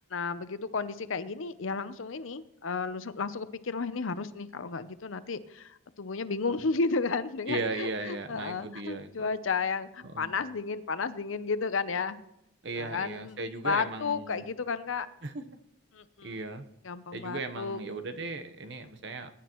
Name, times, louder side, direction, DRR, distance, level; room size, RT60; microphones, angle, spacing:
voice 1, 0.1-12.2 12.8-13.4 13.6-15.1 15.9-16.4 16.8-17.8, left 4 dB, 80° left, 13 dB, 0.7 m, -33 dB
voice 2, 7.5-9.3 10.0-10.3 12.6-14.4 15.2-15.4 16.2-16.7 17.1-19.3, right 3 dB, 60° right, 8 dB, 1.0 m, -36 dB
21.5 x 10.0 x 3.1 m, 0.82 s
head